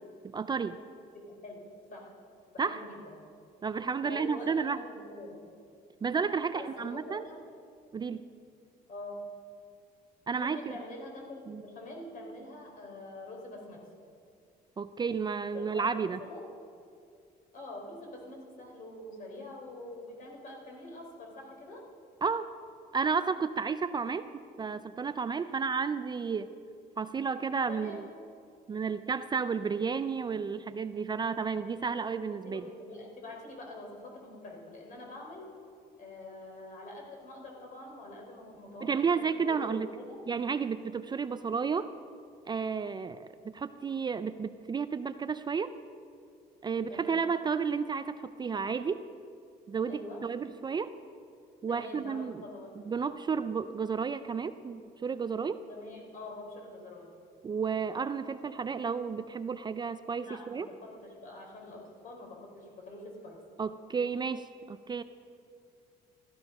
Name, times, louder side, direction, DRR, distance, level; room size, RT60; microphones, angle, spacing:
voice 1, 0.3-0.8 2.6-2.8 3.6-4.8 6.0-7.3 7.9-8.2 10.3-10.6 11.5-11.6 14.8-16.2 22.2-22.5 22.9-24.3 24.6-26.5 27.0-28.1 28.7-32.6 38.8-39.9 40.3-41.9 42.5-43.3 43.5-45.7 46.6-49.0 49.7-51.0 51.6-52.4 52.9-55.6 57.4-60.7 63.6-65.0, right 5 dB, 25° right, 11 dB, 0.4 m, -32 dB
voice 2, 1.1-2.1 2.5-3.2 4.0-5.5 6.5-7.4 8.9-9.2 10.4-13.8 15.5-16.5 17.5-21.8 24.0-24.2 27.7-28.0 32.4-35.5 36.0-40.2 46.9-47.2 49.9-50.2 51.7-52.9 55.7-57.1 60.1-63.4, left 2 dB, 50° left, 0 dB, 4.1 m, -45 dB
15.0 x 13.5 x 5.5 m, 2.4 s
cardioid pair, 110°, 17 cm